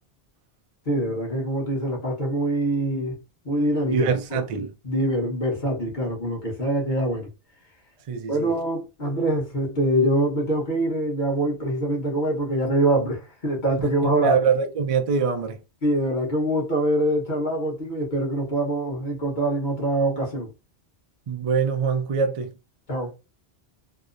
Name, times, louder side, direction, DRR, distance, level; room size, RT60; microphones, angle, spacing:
voice 1, 0.8-3.2 3.4-4.4 4.8-7.3 8.3-14.4 15.8-20.5 22.9-23.1, right 1 dB, 50° left, 1.1 m, -24 dB
voice 2, 3.9-4.7 8.1-8.5 13.8-15.6 21.3-22.5, right 6 dB, 55° right, 0.4 m, -24 dB
2.9 x 2.0 x 2.4 m
omnidirectional pair, 1.0 m